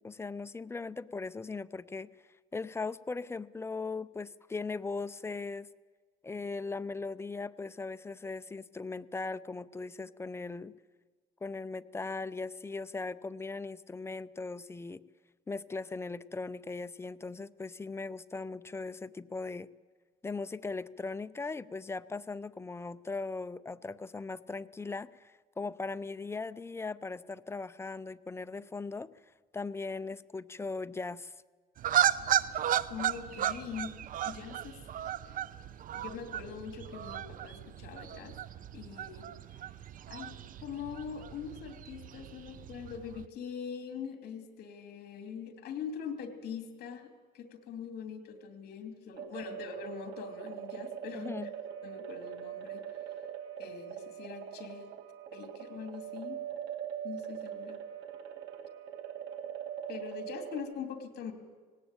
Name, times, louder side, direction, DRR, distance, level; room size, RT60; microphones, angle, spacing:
voice 1, 0.0-2.1 2.5-5.7 6.2-10.7 11.4-15.0 15.5-19.7 20.2-29.1 29.5-31.3 51.1-51.5, left 3 dB, 15° left, 15 dB, 0.6 m, -39 dB
sound 1, 31.8-43.3, right 11 dB, 55° right, 0.7 m, -35 dB
voice 2, 32.9-33.9 34.2-34.8 35.3-35.4 35.9-38.4 38.7-39.3 40.1-40.3 40.6-51.3 51.8-52.8 53.6-54.9 55.3-56.4 57.0-57.8 59.9-61.3, left 7 dB, 70° left, 6 dB, 2.8 m, -42 dB
sound 2, 49.1-60.6, right 10 dB, 90° right, 2.1 m, -42 dB
19.0 x 17.5 x 8.9 m, 1.5 s
cardioid pair, 110°, 17 cm